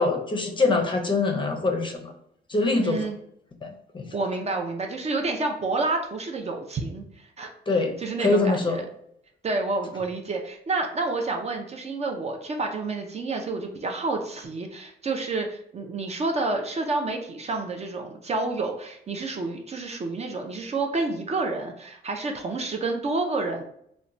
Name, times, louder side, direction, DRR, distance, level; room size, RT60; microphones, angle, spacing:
voice 1, 0.0-2.1 2.5-3.0 3.6-4.1 7.7-7.9 8.2-8.8, left 3 dB, 25° left, 3 dB, 0.5 m, -24 dB
voice 2, 2.8-3.2 4.1-8.8 9.4-23.6, right 3 dB, 35° right, 3 dB, 0.4 m, -29 dB
2.9 x 2.1 x 2.5 m, 0.70 s
cardioid pair, 90°, 20 cm